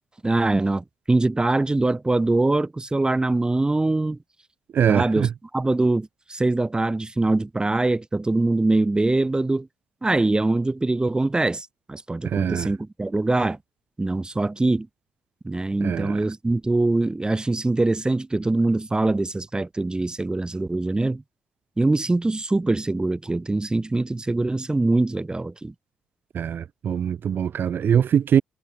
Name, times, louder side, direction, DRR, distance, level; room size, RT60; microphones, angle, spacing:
voice 1, 0.2-4.2 4.9-5.3 5.5-9.7 10.0-13.6 14.0-14.9 15.4-21.2 21.8-25.7, right 2 dB, 20° right, 2.3 m, -23 dB
voice 2, 4.7-5.3 12.2-12.7 15.8-16.2 26.3-28.4, right 8 dB, 55° right, 3.8 m, -22 dB
hypercardioid pair, 45°, 4 cm